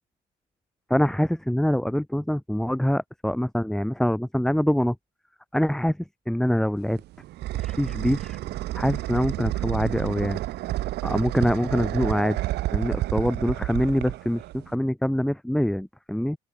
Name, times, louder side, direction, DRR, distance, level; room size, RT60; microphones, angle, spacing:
voice 1, 0.9-5.0 5.5-6.0 6.3-7.0 7.5-8.4 8.7-10.4 11.0-12.4 12.7-16.4, equal, 5° left, 7.6 m, -24 dB
sound 1, 6.8-14.7, right 16 dB, 80° right, 6.3 m, -30 dB
open air
cardioid pair, 110°, 17 cm